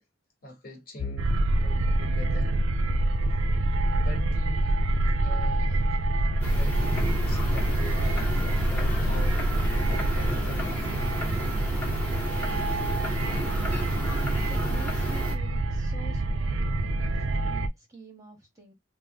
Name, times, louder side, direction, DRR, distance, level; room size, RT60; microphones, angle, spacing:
voice 1, 0.4-2.5 3.9-4.8 5.2-5.9 6.3-11.2 16.1-16.3, equal, 45° left, 1.0 m, -43 dB
sound 1, 1.0-12.8 13.2-13.5 13.9-14.1 14.9-15.4, left 5 dB, 70° left, 0.4 m, -49 dB
sound 2, 1.2-17.7, right 1 dB, 75° right, 0.4 m, -26 dB
sound 3, 6.4-15.3, left 1 dB, 10° left, 0.9 m, -33 dB
voice 2, 14.5-18.7, right 1 dB, 15° right, 0.9 m, -47 dB
3.2 x 2.0 x 3.4 m
head